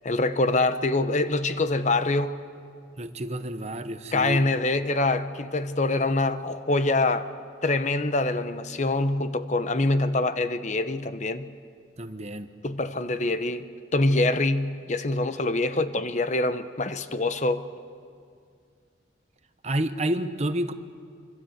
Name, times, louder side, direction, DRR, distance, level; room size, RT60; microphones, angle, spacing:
voice 1, 0.0-2.3 4.1-7.3 7.6-11.5 12.6-17.6, left 2 dB, 40° left, 0.9 m, -25 dB
voice 2, 3.0-4.4 12.0-12.5 19.6-20.7, right 1 dB, 35° right, 1.1 m, -29 dB
25.5 x 24.5 x 8.0 m
head